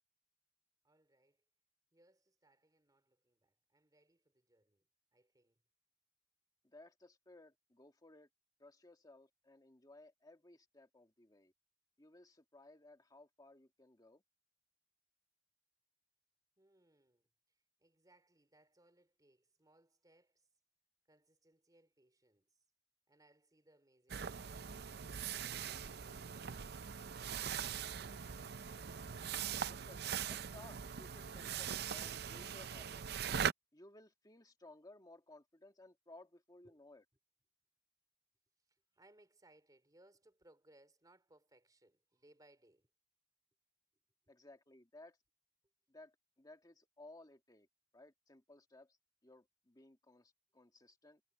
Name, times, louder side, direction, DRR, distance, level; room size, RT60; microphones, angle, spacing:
voice 1, 0.8-1.4 1.9-5.6 16.6-17.3 17.8-20.5 21.1-22.6 23.1-24.7 36.6-36.8 38.7-42.9, right 1 dB, 20° right, 3.2 m, -69 dB
voice 2, 6.6-8.3 8.6-11.5 12.0-14.2 29.5-33.1 33.7-37.0 44.3-45.2 45.9-47.7 47.9-49.0 49.2-51.2, left 2 dB, 20° left, 1.8 m, -60 dB
sound 1, 24.1-33.5, right 7 dB, 60° right, 0.6 m, -41 dB
head